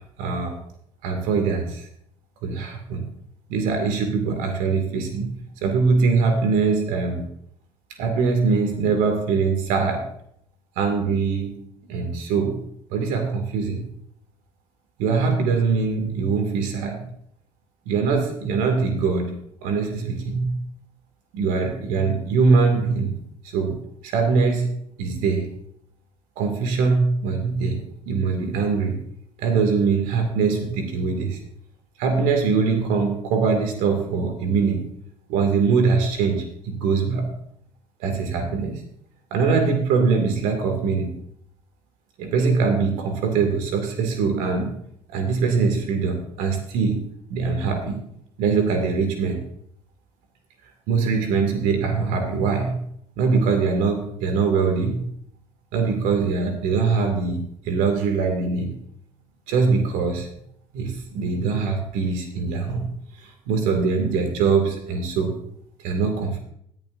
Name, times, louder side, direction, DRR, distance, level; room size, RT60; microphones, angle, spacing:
voice 1, 0.2-0.6 1.0-1.8 2.4-3.0 3.5-5.3 5.6-7.3 8.0-10.0 10.8-11.6 11.9-12.6 12.9-13.8 15.0-17.0 17.9-19.3 19.6-20.5 21.3-23.1 23.4-23.8 24.0-24.7 25.0-25.5 26.4-27.8 28.1-29.0 29.4-31.4 32.0-34.9 35.3-37.3 38.0-38.8 39.3-41.1 42.2-44.7 45.1-47.0 47.3-48.0 48.4-49.4 50.9-52.8 53.2-55.0 55.7-58.7 59.5-60.3 60.7-62.8 63.2-65.3 65.8-66.4, right 4 dB, 75° right, 5 dB, 2.3 m, -22 dB
17.0 x 10.5 x 2.6 m, 0.70 s
hypercardioid pair, 70°, 14 cm